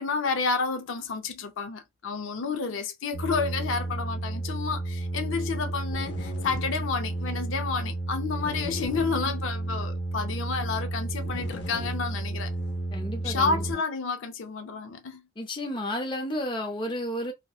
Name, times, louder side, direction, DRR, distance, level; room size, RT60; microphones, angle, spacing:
voice 1, 0.0-12.5 13.2-15.2, left 4 dB, 75° left, 0.5 m, -30 dB
sound 1, 3.1-13.7, right 2 dB, 60° left, 0.8 m, -32 dB
voice 2, 12.9-13.6 15.4-17.3, equal, 25° left, 0.5 m, -32 dB
2.7 x 2.0 x 2.3 m
head